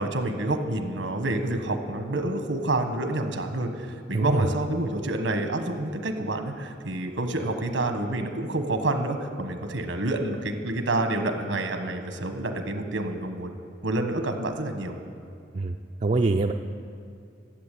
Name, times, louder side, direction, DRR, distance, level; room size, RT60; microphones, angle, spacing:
voice 1, 0.0-13.5 13.8-15.0, right 2 dB, 85° right, 6 dB, 1.3 m, -28 dB
voice 2, 4.1-4.5 15.5-16.5, right 3 dB, 40° right, 2 dB, 0.4 m, -24 dB
13.5 x 8.0 x 8.4 m, 2.5 s
head